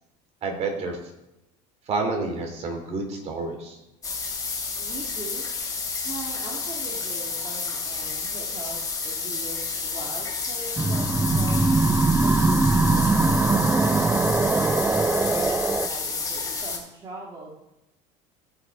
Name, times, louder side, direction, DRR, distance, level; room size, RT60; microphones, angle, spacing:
voice 1, 0.4-1.0 1.9-3.8, right 3 dB, 45° right, 3 dB, 2.7 m, -29 dB
sound 1, 4.0-16.8, left 4 dB, 20° left, 2.7 m, -30 dB
voice 2, 4.8-5.5 6.0-11.6 12.2-13.9 14.5-17.6, right 3 dB, 30° right, -3 dB, 1.9 m, -41 dB
sound 2, 10.8-15.9, right 3 dB, 10° right, 0.4 m, -21 dB
15.5 x 5.9 x 4.7 m, 0.92 s
cardioid pair, 125°, 15 cm